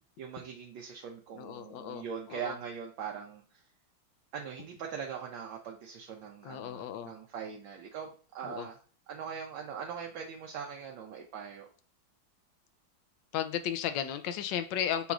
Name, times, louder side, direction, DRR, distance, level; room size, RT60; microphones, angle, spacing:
voice 1, 0.2-3.6 4.3-8.8 9.1-11.7, right 7 dB, 75° right, 1 dB, 1.4 m, -41 dB
voice 2, 1.3-2.6 6.4-7.1 8.4-8.7 13.3-15.1, left 10 dB, 75° left, 9 dB, 1.2 m, -34 dB
6.9 x 3.0 x 2.4 m, 0.42 s
omnidirectional pair, 2.2 m